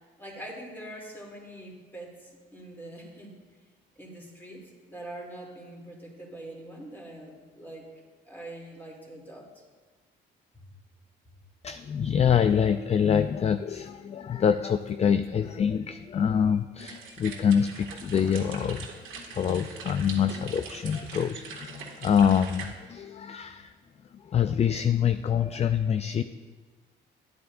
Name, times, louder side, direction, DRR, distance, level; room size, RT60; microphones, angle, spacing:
voice 1, 0.2-3.3 4.0-7.9 8.3-9.5 10.5-10.6, right 1 dB, 10° left, -2 dB, 2.9 m, -43 dB
voice 2, 11.6-23.7 24.1-26.2, left 7 dB, 35° left, 11 dB, 0.4 m, -25 dB
sound 1, 16.8-22.7, right 5 dB, 85° right, 1.9 m, -42 dB
12.5 x 10.5 x 2.6 m, 1.4 s
cardioid pair, 90°, 20 cm